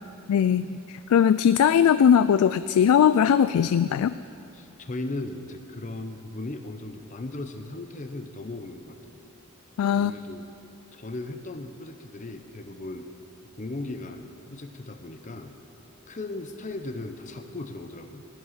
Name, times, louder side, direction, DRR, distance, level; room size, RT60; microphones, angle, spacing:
voice 1, 0.3-4.1 9.8-10.1, left 8 dB, 85° left, 14 dB, 0.3 m, -20 dB
voice 2, 4.5-9.2 9.9-10.5 10.9-13.1 13.6-15.5 16.1-18.3, left 2 dB, 35° left, 7 dB, 0.7 m, -37 dB
16.0 x 11.0 x 5.8 m, 2.8 s
head